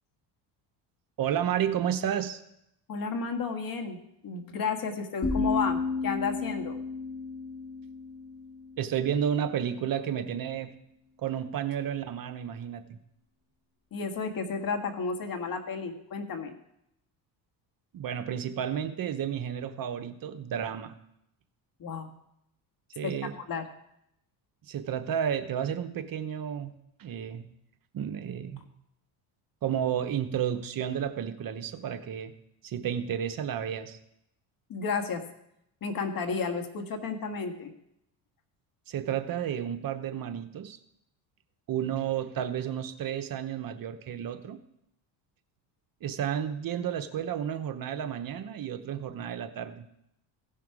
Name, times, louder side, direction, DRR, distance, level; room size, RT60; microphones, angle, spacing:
voice 1, 1.2-2.4 8.8-10.7 11.2-13.0 17.9-21.0 23.0-23.3 24.7-26.7 27.0-27.5 27.9-28.6 29.6-32.3 32.6-34.0 38.9-40.8 41.7-44.6 46.0-49.9, right 9 dB, 45° right, 10 dB, 0.9 m, -31 dB
voice 2, 2.9-6.8 13.9-16.5 21.8-22.1 23.0-23.1 23.5-23.6 34.7-35.2 35.8-37.7, left 5 dB, 45° left, 5 dB, 1.5 m, -32 dB
sound 1, 5.2-9.1, left 4 dB, 30° left, 4.0 m, -32 dB
16.0 x 5.7 x 4.8 m, 0.79 s
supercardioid pair, 95°, 46 cm